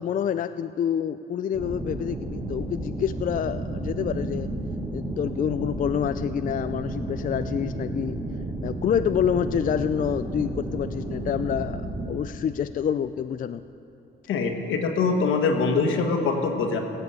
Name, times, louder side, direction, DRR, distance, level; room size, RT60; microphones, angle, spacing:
voice 1, 0.0-4.5 4.9-8.2 8.6-13.6, left 8 dB, 45° left, 10 dB, 0.4 m, -27 dB
sound 1, 1.5-12.1, right 1 dB, 20° right, 1.6 m, -32 dB
voice 2, 14.3-16.8, left 4 dB, 80° left, 3 dB, 1.5 m, -23 dB
17.5 x 7.1 x 8.2 m, 2.7 s
cardioid pair, 90°, 20 cm